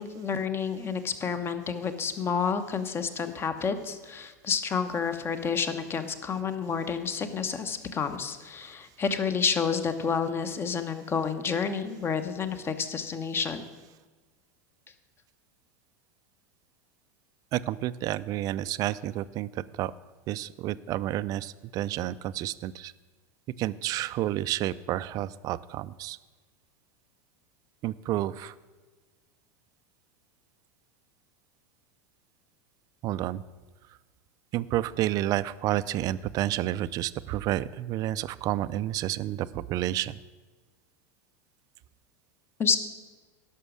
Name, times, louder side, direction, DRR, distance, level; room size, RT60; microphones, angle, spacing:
voice 1, 0.0-13.6 42.6-42.8, left 6 dB, 25° left, 10 dB, 1.0 m, -29 dB
voice 2, 17.5-19.9 20.3-22.9 23.6-26.2 27.8-28.5 33.0-33.4 34.5-40.2, right 14 dB, 45° right, 16 dB, 0.4 m, -30 dB
11.0 x 6.0 x 6.4 m, 1.3 s
hypercardioid pair, 95°, 9 cm